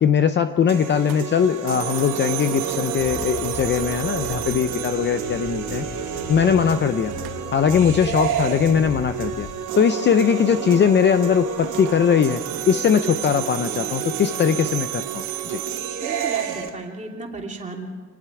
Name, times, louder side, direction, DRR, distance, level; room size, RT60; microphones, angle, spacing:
voice 1, 0.0-5.9 6.3-7.1 7.5-9.5 9.8-12.4 12.7-15.6, left 7 dB, 30° left, 9 dB, 0.6 m, -20 dB
sound 1, 0.7-16.7, right 7 dB, 50° right, 2.4 m, -30 dB
sound 2, 1.1-6.1 7.1-7.7 11.6-17.0, right 15 dB, 80° right, 1.3 m, -34 dB
sound 3, 3.0-9.5, left 5 dB, 50° left, 3.3 m, -37 dB
voice 2, 16.0-17.9, right 3 dB, 20° right, 1 dB, 2.9 m, -34 dB
27.5 x 19.5 x 4.9 m, 1.5 s
cardioid pair, 145°, 37 cm